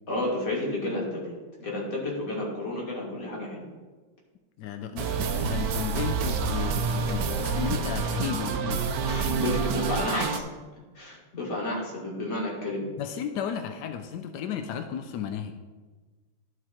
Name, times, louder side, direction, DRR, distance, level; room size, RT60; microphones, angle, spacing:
voice 1, 0.1-1.3 1.6-3.6 9.0-10.5 11.0-12.9, left 1 dB, 40° left, -3 dB, 2.4 m, -31 dB
voice 2, 4.6-8.9 13.0-15.5, left 8 dB, 80° left, 7 dB, 0.9 m, -34 dB
sound 1, 5.0-10.4, right 5 dB, 75° right, 0.8 m, -28 dB
12.5 x 4.7 x 4.4 m, 1.3 s
omnidirectional pair, 2.4 m